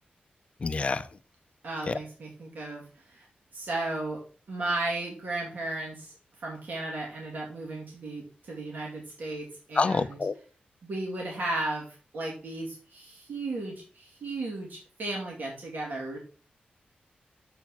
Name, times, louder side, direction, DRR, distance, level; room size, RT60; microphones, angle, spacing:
voice 1, 0.6-1.1 1.9-2.0 9.7-10.3, left 4 dB, 40° left, 12 dB, 0.5 m, -27 dB
voice 2, 1.6-3.3 3.5-4.2 4.5-6.1 6.4-10.2 10.8-11.9 12.1-16.2, right 2 dB, 65° right, -3 dB, 2.4 m, -35 dB
7.0 x 4.6 x 5.6 m, 0.39 s
wide cardioid pair, 160°, 3 cm